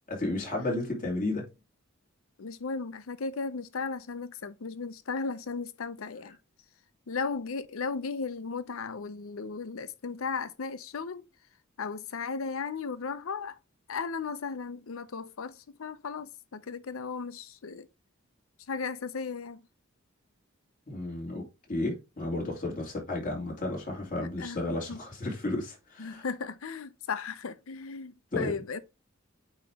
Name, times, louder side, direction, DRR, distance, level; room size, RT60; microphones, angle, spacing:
voice 1, 0.1-1.4 20.9-21.4 21.7-26.2 28.3-28.5, left 2 dB, 40° left, 2.7 m, -32 dB
voice 2, 2.4-6.4 7.1-11.2 11.8-13.6 13.9-17.9 18.7-19.6 24.4-25.0 26.0-28.8, left 5 dB, 90° left, 0.6 m, -36 dB
8.8 x 3.0 x 3.5 m
head